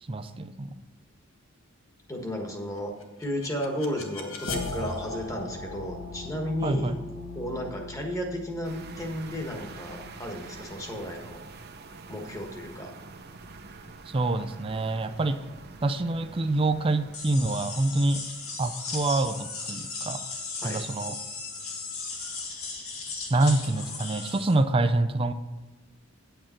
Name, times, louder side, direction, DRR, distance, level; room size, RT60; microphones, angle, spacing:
voice 1, 0.1-0.8 6.6-7.0 14.1-15.4 15.8-18.2 18.6-20.2 20.6-21.2 23.3-25.3, right 2 dB, 25° right, 8 dB, 0.4 m, -26 dB
voice 2, 2.1-2.9 3.2-6.9 7.3-11.4 12.1-12.9 20.6-20.8, equal, 15° left, 2 dB, 1.5 m, -33 dB
sound 1, 3.0-12.0, left 3 dB, 65° left, 1.3 m, -39 dB
sound 2, 8.6-17.2, right 3 dB, 50° right, 0.8 m, -46 dB
sound 3, 17.1-24.5, left 4 dB, 85° left, 2.0 m, -36 dB
9.1 x 8.6 x 4.4 m, 1.2 s
head